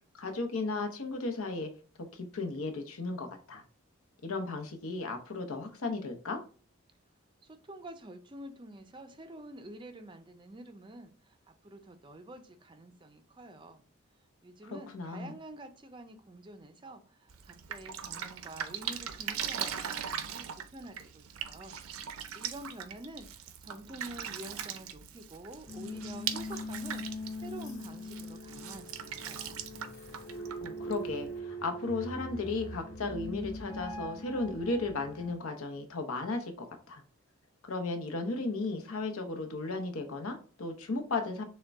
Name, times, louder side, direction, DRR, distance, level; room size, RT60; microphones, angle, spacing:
voice 1, 0.1-1.7 2.1-3.6 4.2-6.4 14.9-15.3 30.6-37.0 37.7-41.4, left 3 dB, 85° left, 5 dB, 0.9 m, -35 dB
voice 2, 7.4-13.8 14.4-21.8 22.1-29.7, right 1 dB, 20° right, 8 dB, 0.4 m, -48 dB
Drip, 17.3-31.4, right 8 dB, 85° right, 0.5 m, -40 dB
sound 1, 25.7-35.3, left 1 dB, 15° left, 1.2 m, -42 dB
6.4 x 2.2 x 3.5 m, 0.40 s
head